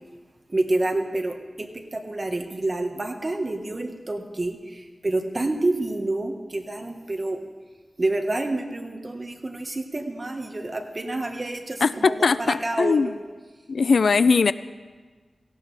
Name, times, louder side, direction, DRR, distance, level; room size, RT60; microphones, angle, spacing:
voice 1, 0.5-7.4 8.0-13.1, right 2 dB, 35° right, 4 dB, 1.4 m, -28 dB
voice 2, 11.8-13.1 13.7-14.5, left 5 dB, 80° left, 15 dB, 0.4 m, -20 dB
17.5 x 16.0 x 3.4 m, 1.4 s
wide cardioid pair, 80°, 0 cm